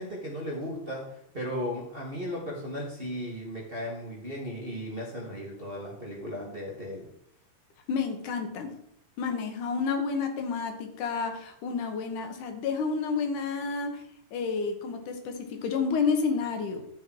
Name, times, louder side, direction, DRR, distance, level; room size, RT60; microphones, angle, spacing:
voice 1, 0.0-7.1, equal, 25° right, -3 dB, 1.5 m, -36 dB
voice 2, 7.9-8.7 9.2-14.0 14.3-16.8, left 5 dB, 80° left, 5 dB, 2.7 m, -30 dB
12.0 x 6.2 x 4.6 m, 0.75 s
omnidirectional pair, 3.6 m